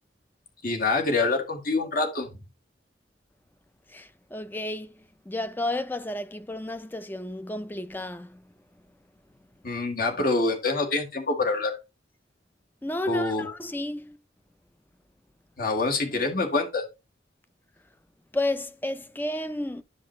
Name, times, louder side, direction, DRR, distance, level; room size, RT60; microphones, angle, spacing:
voice 1, 0.6-2.3 9.6-11.8 13.1-13.5 15.6-16.8, left 3 dB, 50° left, 1.7 m, -26 dB
voice 2, 3.9-4.9 5.3-8.4 12.8-14.2 18.3-19.8, left 1 dB, 10° left, 0.4 m, -32 dB
11.5 x 5.3 x 3.1 m
head